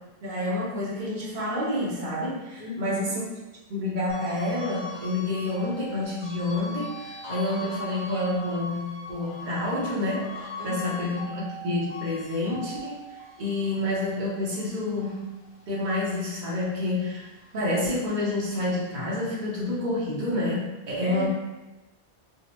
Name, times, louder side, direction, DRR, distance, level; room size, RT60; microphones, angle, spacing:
voice 1, 0.2-3.2 3.7-13.1 13.4-15.3 15.7-21.3, left 1 dB, 45° right, -6 dB, 0.9 m, -28 dB
voice 2, 2.6-3.1 10.6-11.1 21.0-21.3, left 2 dB, 45° left, -4 dB, 0.6 m, -36 dB
sound 1, 4.1-16.7 17.1-18.8, left 2 dB, 75° left, 1.0 m, -41 dB
3.6 x 2.0 x 2.9 m, 1.1 s
omnidirectional pair, 1.1 m